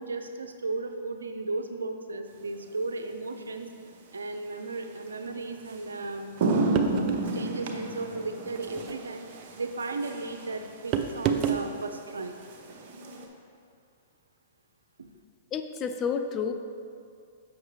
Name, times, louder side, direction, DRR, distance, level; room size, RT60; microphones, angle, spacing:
voice 1, 0.0-3.7 4.1-6.3 7.3-9.3 9.6-12.3, right 3 dB, 85° right, 6 dB, 0.5 m, -35 dB
sound 1, 2.7-2.9 5.1-5.2 5.7-5.8 6.1-13.3, right 2 dB, 55° right, 0.8 m, -32 dB
sound 2, 6.7-7.3 8.7-9.0 10.9-11.7, right 8 dB, 40° right, 0.4 m, -28 dB
voice 2, 15.5-16.5, left 6 dB, 30° left, 7 dB, 0.4 m, -30 dB
7.1 x 5.8 x 3.2 m, 2.4 s
hypercardioid pair, 120°, 0 cm